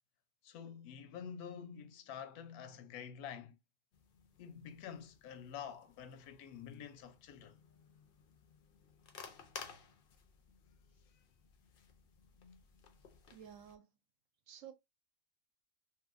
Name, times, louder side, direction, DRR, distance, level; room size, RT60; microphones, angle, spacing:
voice 1, 0.4-3.6 4.4-7.6, left 8 dB, 90° left, 1.1 m, -48 dB
sound 1, 3.9-13.8, left 6 dB, 65° left, 0.5 m, -57 dB
voice 2, 13.3-13.9 14.5-14.7, right 9 dB, 70° right, 0.9 m, -52 dB
2.8 x 2.7 x 2.4 m
omnidirectional pair, 1.6 m